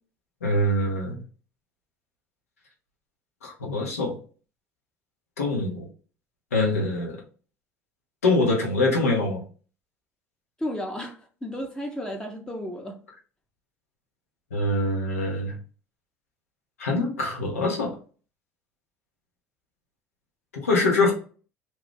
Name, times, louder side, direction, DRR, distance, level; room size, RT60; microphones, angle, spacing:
voice 1, 0.4-1.2 3.4-4.2 5.4-5.9 6.5-7.2 8.2-9.4 14.5-15.6 16.8-17.9 20.5-21.1, left 2 dB, 85° left, 0.9 m, -24 dB
voice 2, 10.6-13.0, equal, 10° left, 0.7 m, -33 dB
2.6 x 2.3 x 3.6 m
hypercardioid pair, 70°, 8 cm